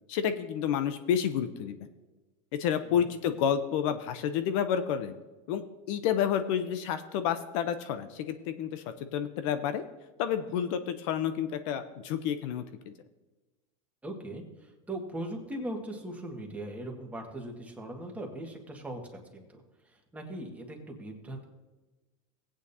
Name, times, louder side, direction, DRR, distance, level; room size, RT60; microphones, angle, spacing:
voice 1, 0.1-1.8 2.6-5.1 5.5-9.8 10.2-12.9, left 9 dB, 65° left, 10 dB, 0.8 m, -30 dB
voice 2, 14.0-21.5, right 1 dB, 10° right, 0 dB, 1.8 m, -40 dB
16.5 x 8.9 x 2.8 m, 1.1 s
supercardioid pair, 125°, 17 cm